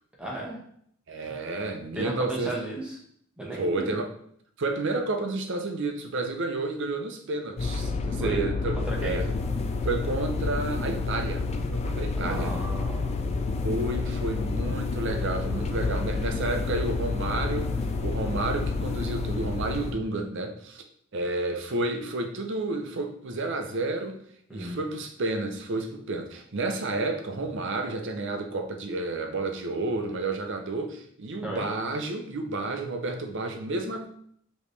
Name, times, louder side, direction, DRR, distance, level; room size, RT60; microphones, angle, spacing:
voice 1, 0.2-0.6 1.3-1.4 1.9-3.0 3.4-4.0 8.2-8.4 8.8-9.2 12.2-13.2 24.5-24.8 31.4-31.7, right 1 dB, 5° right, -4 dB, 1.1 m, -34 dB
voice 2, 1.1-2.5 3.6-4.1 4.6-9.3 9.8-11.4 11.7-12.5 13.6-20.8 21.1-24.2 24.5-34.1, right 2 dB, 60° right, 4 dB, 0.7 m, -31 dB
sound 1, 7.6-20.0, left 3 dB, 30° left, 0.3 m, -29 dB
5.1 x 3.1 x 3.2 m, 0.65 s
head